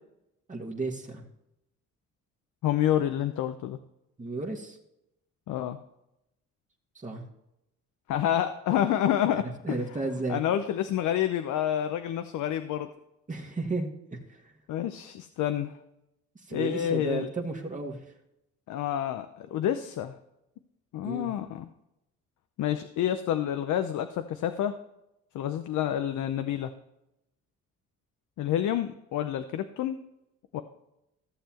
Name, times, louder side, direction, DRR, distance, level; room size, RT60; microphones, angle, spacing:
voice 1, 0.5-1.2 4.2-4.8 6.9-7.2 9.6-10.4 13.3-14.4 16.5-18.0 21.0-21.3, right 3 dB, 25° right, 0 dB, 1.7 m, -33 dB
voice 2, 2.6-3.8 5.5-5.8 8.1-9.8 10.3-12.9 14.7-15.8 16.5-17.3 18.7-20.1 20.9-21.7 22.6-24.7 25.3-26.7 28.4-30.0 30.5-30.6, left 11 dB, 80° left, 8 dB, 0.7 m, -28 dB
15.0 x 6.8 x 2.9 m, 0.86 s
cardioid pair, 90°, 30 cm